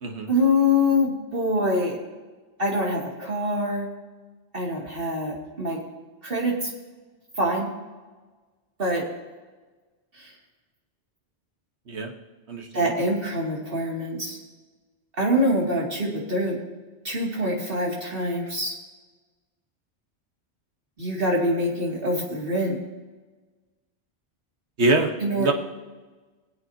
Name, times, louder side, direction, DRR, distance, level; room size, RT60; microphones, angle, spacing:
voice 1, 0.3-1.9 2.6-3.9 4.5-5.8 6.2-6.7 7.4-7.7 8.8-9.0 10.2-10.3 12.7-14.4 15.2-16.6 17.0-18.7 21.0-22.8 25.2-25.5, left 1 dB, 50° right, -3 dB, 2.9 m, -24 dB
voice 2, 12.5-12.9 24.8-25.5, right 2 dB, 70° right, 3 dB, 1.6 m, -24 dB
24.0 x 8.0 x 2.9 m, 1.3 s
omnidirectional pair, 1.2 m